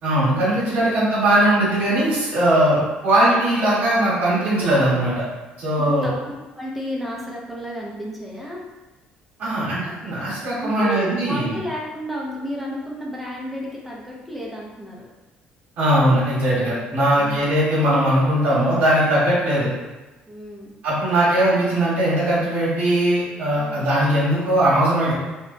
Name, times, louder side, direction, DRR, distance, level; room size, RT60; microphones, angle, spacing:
voice 1, 0.0-5.2 5.6-6.1 9.4-11.6 15.8-19.7 20.8-25.1, right 1 dB, 60° right, -8 dB, 1.0 m, -19 dB
voice 2, 5.8-6.2 6.5-8.6 10.6-15.1 16.5-16.8 17.1-17.4 19.4-19.7 20.3-20.8 23.6-23.9, equal, ahead, -4 dB, 0.4 m, -32 dB
2.8 x 2.1 x 2.5 m, 1.1 s
cardioid pair, 145°, 3 cm